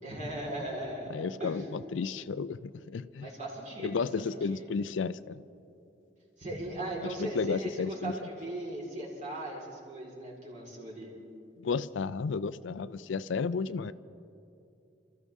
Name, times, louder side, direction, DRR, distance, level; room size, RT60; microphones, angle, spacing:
voice 1, 0.0-1.6 3.2-4.9 6.4-11.1, right 1 dB, 40° right, -4 dB, 4.2 m, -38 dB
voice 2, 1.1-3.3 3.8-5.4 7.2-8.1 11.6-13.9, left 5 dB, 80° left, 15 dB, 0.4 m, -33 dB
27.5 x 14.0 x 3.6 m, 2.7 s
head